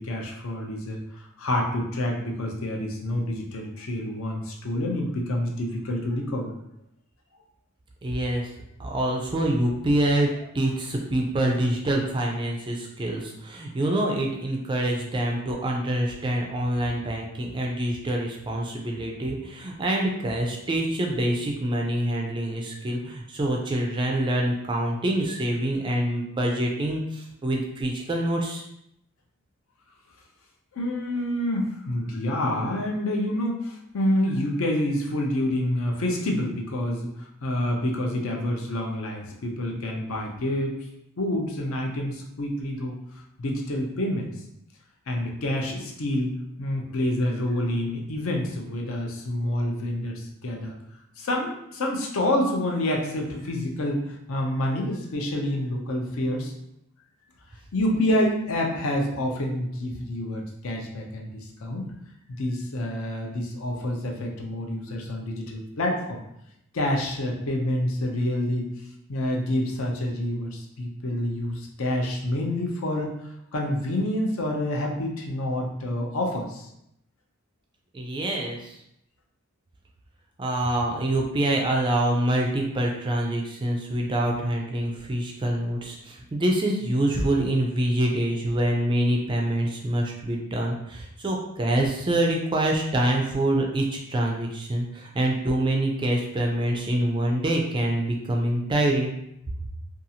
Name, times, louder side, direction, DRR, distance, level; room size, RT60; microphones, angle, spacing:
voice 1, 0.0-6.5 10.3-10.4 30.7-40.7 41.2-43.0 43.4-44.3 45.1-50.7 51.2-56.5 57.7-61.9 62.3-66.2 66.7-68.7 69.1-73.1 73.5-76.7, left 1 dB, 65° left, 0 dB, 0.5 m, -28 dB
voice 2, 8.0-8.5 8.8-10.3 10.5-28.6 77.9-78.8 80.4-99.2, right 1 dB, 20° right, 0 dB, 0.3 m, -26 dB
2.7 x 2.3 x 2.7 m, 0.79 s
head